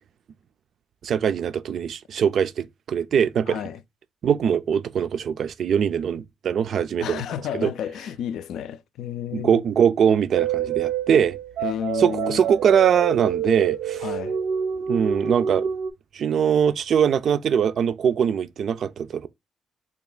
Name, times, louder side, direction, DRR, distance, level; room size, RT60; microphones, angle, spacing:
voice 1, 1.0-3.6 4.2-7.2 7.6-7.7 9.3-11.4 12.0-14.1 14.9-15.7 16.1-19.3, right 8 dB, 60° right, 0.4 m, -22 dB
voice 2, 3.5-3.8 7.0-9.6 11.6-12.4 14.0-14.4, left 9 dB, 80° left, 0.3 m, -31 dB
sound 1, 10.3-15.9, right 8 dB, 90° right, 0.7 m, -27 dB
3.4 x 2.4 x 3.8 m
cardioid pair, 90°, 0 cm